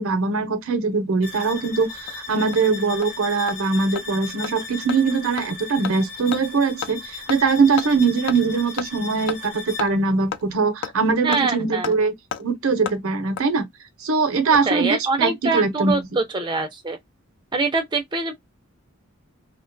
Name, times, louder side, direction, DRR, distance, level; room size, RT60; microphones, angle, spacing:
voice 1, 0.0-12.1 12.4-13.7 14.0-16.0, right 4 dB, 75° right, 0.6 m, -22 dB
sound 1, 1.2-10.0, left 4 dB, 40° left, 0.9 m, -37 dB
Hammer, 1.6-1.7 2.1-2.2 2.5-2.6 3.0-3.1 3.5-3.6 4.0-4.1 4.4-4.5 4.9-5.0 5.4-5.5 5.8-6.0 6.3-6.4 6.8-7.0 7.3-7.4 7.8-7.9 8.3-8.4 8.8-8.9 9.3-9.4 9.8-9.9 10.3-10.4 10.8-10.9 11.3-11.4 11.8-12.0 12.3-12.4 12.9-13.0 13.4-13.5 14.4-14.8 15.0-15.1, left 8 dB, 55° left, 0.3 m, -30 dB
voice 2, 11.2-11.9 14.7-17.0 17.5-18.3, right 3 dB, 20° right, 0.4 m, -24 dB
2.3 x 2.2 x 2.5 m
head